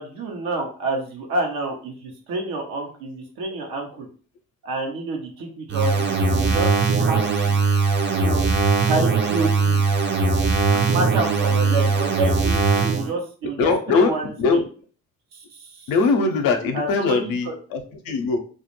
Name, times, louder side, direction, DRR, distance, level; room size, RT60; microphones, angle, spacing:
voice 1, 0.0-4.1 4.6-6.7 7.0-7.6 8.2-8.4 8.8-9.8 10.7-14.6 15.3-15.9 16.7-17.5, right 2 dB, 75° right, 2 dB, 0.8 m, -28 dB
sound 1, 5.7-13.1, right 3 dB, 30° right, 0.5 m, -20 dB
voice 2, 13.6-14.1 14.4-14.6 15.9-18.4, left 4 dB, 70° left, 5 dB, 0.6 m, -21 dB
2.3 x 2.0 x 2.9 m, 0.40 s
hypercardioid pair, 50°, 36 cm